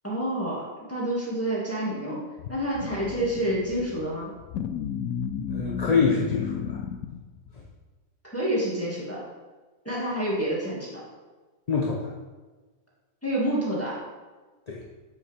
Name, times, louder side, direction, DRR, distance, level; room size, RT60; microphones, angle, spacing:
voice 1, 0.0-2.2 2.5-4.3 8.2-9.2 9.8-11.0 13.2-14.0, right 1 dB, 10° left, -7 dB, 2.1 m, -28 dB
sound 1, 2.4-7.5, left 8 dB, 85° left, 1.1 m, -33 dB
voice 2, 5.5-6.8 7.5-7.6 11.7-12.1 14.7-14.8, left 4 dB, 35° left, -2 dB, 0.8 m, -26 dB
8.3 x 7.1 x 3.5 m, 1.3 s
omnidirectional pair, 1.4 m